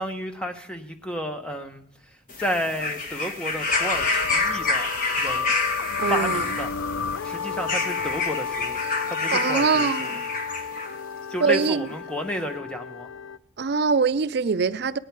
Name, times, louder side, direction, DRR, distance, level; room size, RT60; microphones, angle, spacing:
voice 1, 0.0-1.8 2.4-4.9 5.2-5.5 6.1-6.7 7.2-8.8 9.1-10.2 11.3-13.1, equal, 5° left, 0.9 m, -31 dB
sound 1, 2.3-11.0 11.9-12.0, left 3 dB, 45° left, 1.2 m, -28 dB
sound 2, 3.7-13.4, left 6 dB, 80° left, 0.5 m, -32 dB
voice 2, 6.0-6.4 9.3-10.3 11.4-11.9 13.6-15.0, right 5 dB, 55° right, 0.4 m, -23 dB
18.0 x 9.8 x 4.6 m
head